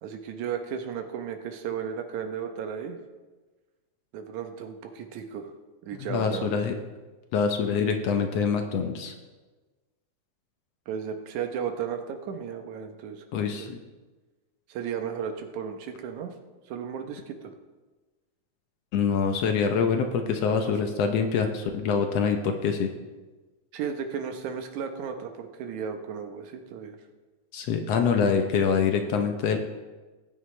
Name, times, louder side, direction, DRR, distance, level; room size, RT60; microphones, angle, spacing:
voice 1, 0.0-3.0 4.1-5.5 5.8-6.6 10.9-13.7 14.7-16.3 16.7-17.5 23.7-27.0, right 7 dB, 80° right, 6 dB, 2.4 m, -34 dB
voice 2, 6.0-6.7 7.3-9.1 13.3-13.8 18.9-22.9 27.5-29.6, left 6 dB, 70° left, 5 dB, 1.7 m, -25 dB
19.0 x 9.0 x 3.2 m, 1.3 s
omnidirectional pair, 3.3 m